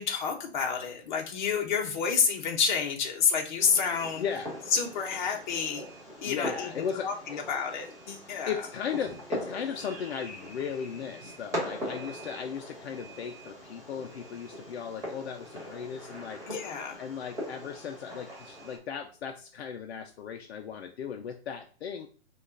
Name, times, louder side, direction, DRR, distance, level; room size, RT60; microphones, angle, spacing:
voice 1, 0.0-4.2 4.7-5.8 6.2-8.5 16.5-17.0, left 6 dB, 45° left, 3 dB, 1.0 m, -29 dB
Fireworks, 3.6-18.8, equal, 10° right, 1.7 m, -41 dB
voice 2, 4.2-4.5 6.2-7.4 8.5-16.4 17.0-22.1, left 7 dB, 65° left, 4 dB, 0.6 m, -36 dB
5.1 x 2.5 x 3.8 m, 0.43 s
hypercardioid pair, 155°, 33 cm